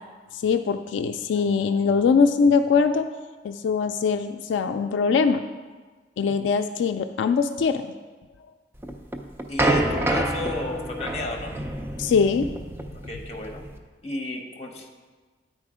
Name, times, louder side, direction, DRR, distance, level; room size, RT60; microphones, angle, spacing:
voice 1, 0.3-3.1 3.4-5.4 6.2-7.9 12.0-12.5, left 5 dB, 85° left, 7 dB, 0.3 m, -22 dB
sound 1, 8.8-13.8, right 1 dB, 15° right, 0.4 m, -28 dB
voice 2, 9.5-11.5 13.1-13.6 14.0-14.9, left 2 dB, 35° left, 2 dB, 0.9 m, -33 dB
9.7 x 4.2 x 4.9 m, 1.4 s
head